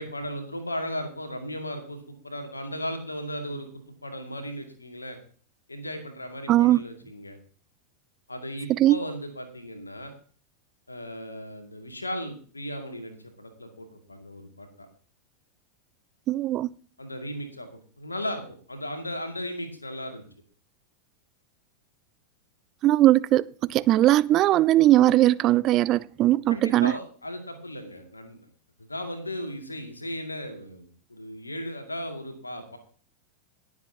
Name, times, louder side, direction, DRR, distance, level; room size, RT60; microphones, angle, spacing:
voice 1, 0.0-5.2 5.7-7.4 8.3-10.1 10.9-14.9 17.0-17.7 18.0-20.2 26.5-28.5 28.8-32.8, equal, 80° left, 2.1 m, -36 dB
voice 2, 6.5-6.8 8.8-9.0 16.3-16.7 22.8-26.9, right 14 dB, 35° right, 0.4 m, -20 dB
20.0 x 7.3 x 2.8 m
figure-of-eight pair, 90°, 0 cm